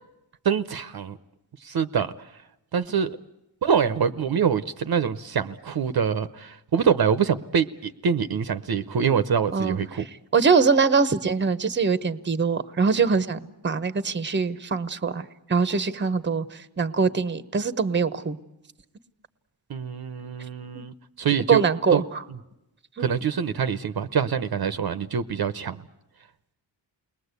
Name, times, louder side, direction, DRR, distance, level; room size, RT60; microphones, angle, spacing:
voice 1, 0.4-1.2 1.6-2.3 2.7-3.2 3.6-10.0 19.7-21.6 21.9-22.0 23.0-25.8, right 7 dB, 55° right, 11 dB, 0.8 m, -25 dB
voice 2, 10.3-18.4 21.5-22.2 23.0-23.1, right 5 dB, 25° right, 13 dB, 0.9 m, -23 dB
29.5 x 21.0 x 8.2 m, 0.93 s
wide cardioid pair, 145°, 45 cm